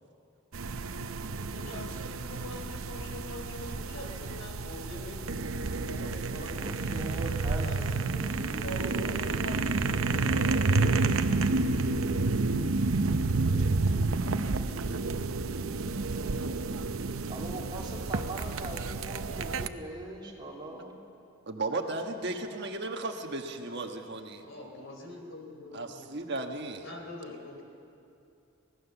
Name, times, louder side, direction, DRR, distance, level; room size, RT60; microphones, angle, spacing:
sound 1, 0.5-19.7, right 3 dB, 80° right, 0.8 m, -30 dB
voice 1, 1.1-10.4 24.4-26.2 26.8-27.6, left 2 dB, 65° left, 1 dB, 3.9 m, -44 dB
voice 2, 6.6-8.6 17.3-21.0, right 1 dB, 20° right, -2 dB, 2.9 m, -41 dB
voice 3, 21.5-24.4 25.7-26.9, right 2 dB, 55° right, 4 dB, 1.4 m, -35 dB
24.5 x 17.5 x 7.0 m, 2.6 s
head